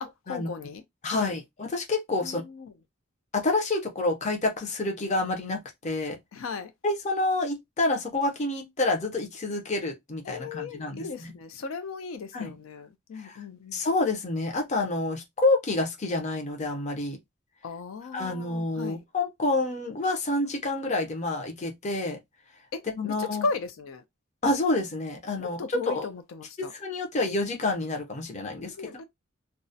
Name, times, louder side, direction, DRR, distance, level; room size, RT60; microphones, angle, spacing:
voice 1, 0.0-1.3 2.2-2.7 6.3-6.7 10.2-13.8 17.6-19.0 22.7-24.0 25.4-26.7 28.7-29.0, left 4 dB, 90° left, 0.4 m, -36 dB
voice 2, 1.0-2.4 3.3-6.2 6.8-11.3 12.3-12.5 13.2-13.4 13.7-17.2 18.1-22.2 22.9-23.4 24.4-26.1 26.6-29.0, left 2 dB, 35° left, 0.5 m, -28 dB
2.3 x 2.0 x 2.6 m
head